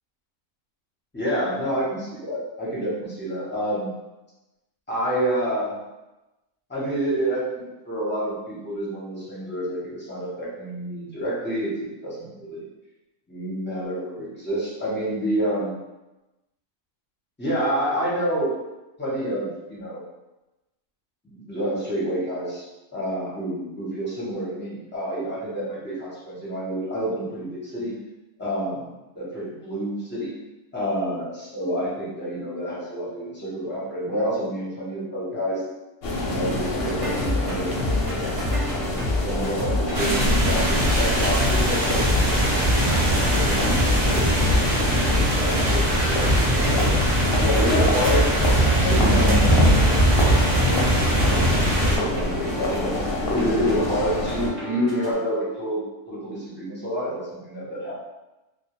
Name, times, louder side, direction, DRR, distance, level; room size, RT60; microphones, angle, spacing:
voice 1, 1.1-3.9 4.9-5.8 6.7-12.7 13.3-15.8 17.4-18.5 19.0-20.0 21.2-22.6 22.9-28.0 28.4-30.3 30.7-35.6 36.2-37.7 38.9-44.6 45.0-47.0 47.4-48.3 48.9-50.4 51.1-52.9 53.3-57.9, equal, 15° left, -7 dB, 0.4 m, -28 dB
sound 1, 36.0-54.5, left 2 dB, 60° left, 0.6 m, -27 dB
sound 2, 36.8-55.1, left 1 dB, 40° right, 0.6 m, -29 dB
sound 3, 39.9-52.0, right 1 dB, 85° right, 0.3 m, -21 dB
2.2 x 2.1 x 2.9 m, 1.0 s
omnidirectional pair, 1.4 m